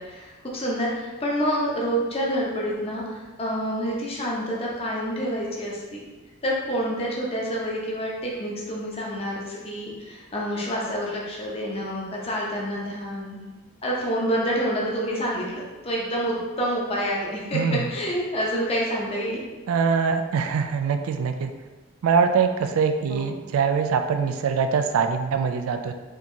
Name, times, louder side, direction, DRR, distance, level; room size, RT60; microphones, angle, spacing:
voice 1, 0.0-6.0 6.4-13.4 13.8-19.4 23.1-23.4, equal, 30° left, -3 dB, 0.7 m, -28 dB
voice 2, 17.5-17.9 19.7-21.5 22.0-25.9, right 6 dB, 80° right, 7 dB, 0.3 m, -23 dB
4.4 x 2.9 x 2.6 m, 1.2 s
head